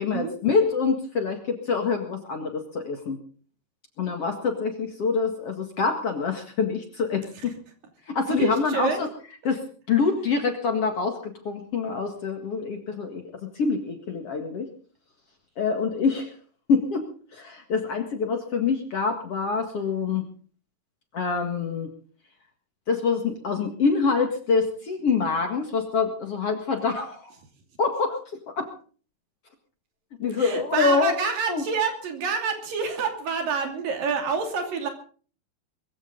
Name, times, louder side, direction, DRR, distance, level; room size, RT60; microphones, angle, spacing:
voice 1, 0.0-3.2 4.0-7.3 8.1-9.1 9.4-14.7 15.6-16.3 16.7-20.2 21.1-21.9 22.9-27.3 27.8-28.2 28.5-28.7 30.2-31.1 31.5-31.6, left 5 dB, 45° left, 5 dB, 2.3 m, -26 dB
voice 2, 8.2-9.0 30.4-34.9, right 5 dB, 65° right, 5 dB, 4.3 m, -27 dB
22.0 x 15.0 x 3.9 m, 0.41 s
omnidirectional pair, 4.4 m